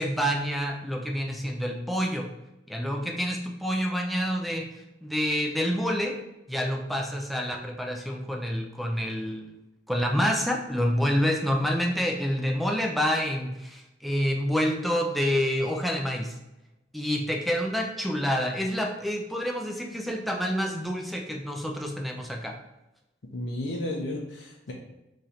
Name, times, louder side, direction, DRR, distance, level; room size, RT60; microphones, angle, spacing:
voice 1, 0.0-2.3 2.7-4.7 5.0-6.2 6.5-9.6 9.9-16.3 16.9-22.5, equal, ahead, 1 dB, 0.3 m, -28 dB
voice 2, 23.3-24.7, left 1 dB, 85° left, -1 dB, 0.6 m, -33 dB
3.1 x 2.8 x 3.8 m, 0.93 s
head